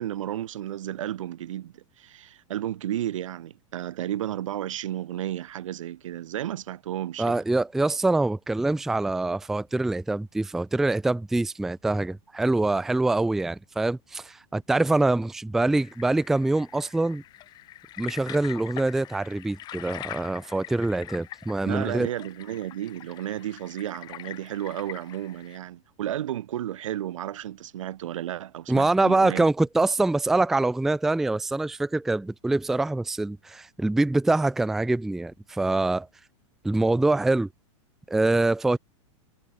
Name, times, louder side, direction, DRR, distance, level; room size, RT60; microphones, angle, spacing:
voice 1, 0.0-7.4 21.6-29.5, right 12 dB, 80° right, 2.1 m, -33 dB
voice 2, 7.2-17.2 18.0-22.1 28.7-36.1 36.6-37.5 38.1-38.8, right 2 dB, ahead, 0.4 m, -24 dB
sound 1, 15.6-25.6, left 14 dB, 25° left, 2.5 m, -44 dB
supercardioid pair, 165°, 16 cm